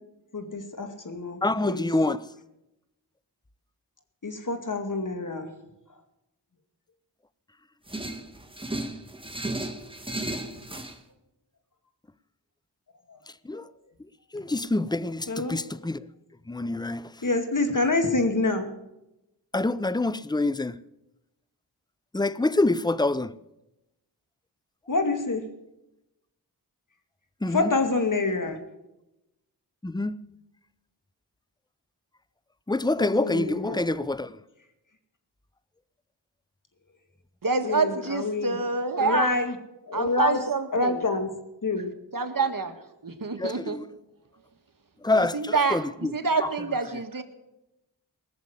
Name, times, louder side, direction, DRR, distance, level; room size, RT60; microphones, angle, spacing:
voice 1, 0.3-1.9 4.2-5.5 13.1-13.2 15.3-15.6 17.2-18.7 24.9-25.4 27.5-28.6 33.0-33.8 37.6-38.6 39.0-39.5 39.9-40.4 40.7-41.3 41.6-41.9, left 3 dB, 50° left, 2.4 m, -27 dB
voice 2, 1.4-2.2 13.4-13.7 14.3-16.0 16.5-17.1 19.5-20.8 22.1-23.3 27.4-27.7 29.8-30.2 32.7-34.4 43.4-43.9 45.0-46.1, left 2 dB, 10° left, 0.6 m, -26 dB
sound 1, 7.9-11.0, right 1 dB, 10° right, 1.8 m, -34 dB
voice 3, 37.4-39.3 39.9-41.0 42.1-42.8 43.0-43.8 45.1-47.2, right 4 dB, 50° right, 1.7 m, -27 dB
19.0 x 7.0 x 8.2 m
cardioid pair, 45°, 41 cm